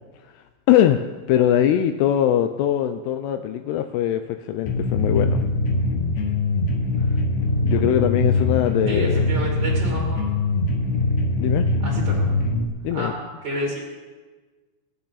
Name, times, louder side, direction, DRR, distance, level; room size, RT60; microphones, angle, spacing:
voice 1, 0.7-5.4 7.6-9.3 11.4-11.7 12.8-13.1, left 10 dB, 80° left, 7 dB, 2.6 m, -21 dB
sound 1, 4.7-12.7, left 2 dB, 60° left, 2.0 m, -22 dB
voice 2, 8.9-10.2 11.8-12.2 12.9-13.8, right 1 dB, 30° right, -3 dB, 2.5 m, -30 dB
24.5 x 8.7 x 4.1 m, 1.3 s
omnidirectional pair, 4.9 m